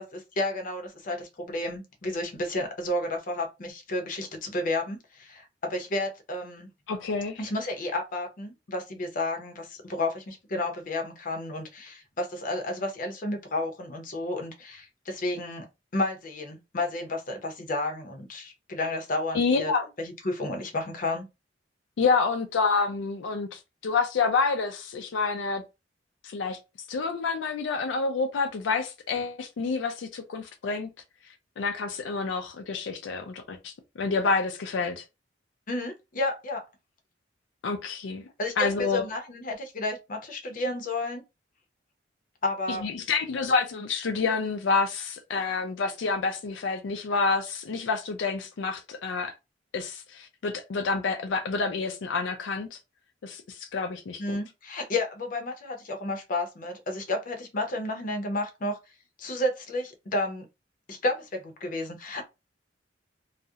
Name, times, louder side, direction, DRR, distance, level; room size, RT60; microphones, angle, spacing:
voice 1, 0.0-6.7 7.4-15.7 15.9-19.7 20.0-21.3 35.7-36.6 38.4-41.2 42.4-42.8 54.2-58.8 59.2-60.5 60.9-62.3, left 2 dB, 45° left, 0.6 m, -31 dB
voice 2, 6.9-7.4 19.3-19.8 22.0-25.6 26.2-26.6 26.9-30.9 31.6-35.0 37.6-38.2 38.6-39.0 42.7-49.3 49.7-52.8 53.2-54.4, left 4 dB, 90° left, 0.4 m, -28 dB
2.4 x 2.0 x 2.7 m
head